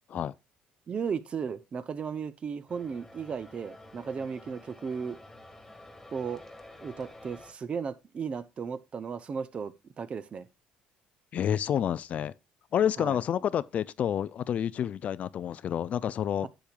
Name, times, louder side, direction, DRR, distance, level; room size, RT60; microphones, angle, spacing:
voice 1, 0.9-5.2 6.1-6.4 6.8-10.5 13.0-13.2, right 6 dB, 35° right, 0.7 m, -35 dB
sound 1, 2.7-7.5, left 1 dB, 10° left, 1.7 m, -50 dB
voice 2, 11.3-12.3 12.7-16.5, left 9 dB, 50° left, 0.4 m, -29 dB
10.0 x 7.0 x 2.4 m
supercardioid pair, 95°, 3 cm